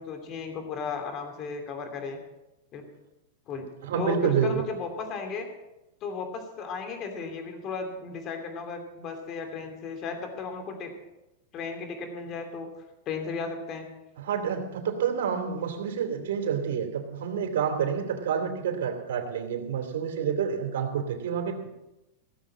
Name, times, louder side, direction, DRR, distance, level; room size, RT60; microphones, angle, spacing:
voice 1, 0.0-2.2 2.7-2.8 3.5-3.7 3.9-5.5 6.0-10.9 11.5-12.7 13.1-13.9, left 5 dB, 35° left, 5 dB, 2.8 m, -35 dB
voice 2, 3.8-4.5 14.2-21.7, right 7 dB, 75° right, 4 dB, 2.7 m, -28 dB
17.5 x 7.3 x 7.6 m, 0.98 s
supercardioid pair, 135°, 0 cm